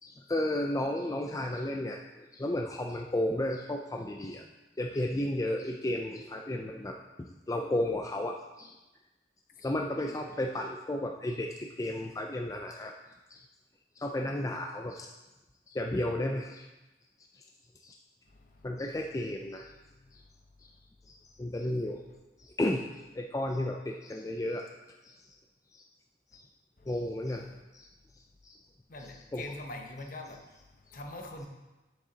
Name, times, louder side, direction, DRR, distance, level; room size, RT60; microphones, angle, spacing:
voice 1, 0.0-4.4 4.8-8.7 9.6-12.9 13.3-13.4 14.0-15.1 15.7-16.7 17.3-17.4 17.8-17.9 18.6-19.7 20.1-20.2 20.6-20.7 21.1-22.0 22.4-22.8 23.1-24.7 25.0-25.2 25.7-25.8 26.3-26.4 26.9-27.4 27.7-27.9 28.4-28.6 29.0-29.6 30.0-30.1, left 1 dB, 20° left, 1 dB, 0.4 m, -33 dB
voice 2, 28.9-30.4 30.9-31.5, left 2 dB, 50° left, 3 dB, 0.9 m, -42 dB
9.1 x 7.5 x 2.8 m, 1.1 s
head